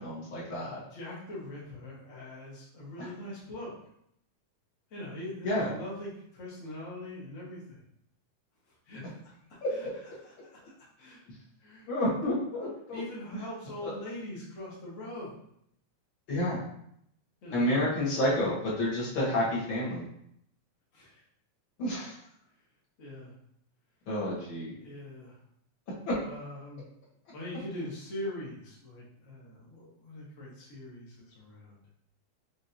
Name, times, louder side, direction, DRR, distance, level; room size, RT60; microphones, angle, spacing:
voice 1, 0.0-0.8 3.0-3.1 5.4-5.7 9.6-9.7 11.9-13.0 13.8-13.9 16.3-16.6 17.5-20.1 21.8-22.2 24.1-24.7 26.1-26.2, left 1 dB, 55° left, -6 dB, 1.4 m, -29 dB
voice 2, 0.9-3.8 4.9-7.8 8.7-9.9 10.2-10.7 11.0-11.2 11.6-11.9 12.9-15.3 17.4-17.8 20.9-21.2 23.0-23.3 24.8-25.4 26.2-26.9 27.3-31.8, left 1 dB, 80° left, -6 dB, 0.6 m, -42 dB
6.1 x 2.7 x 2.6 m, 0.73 s
omnidirectional pair, 3.4 m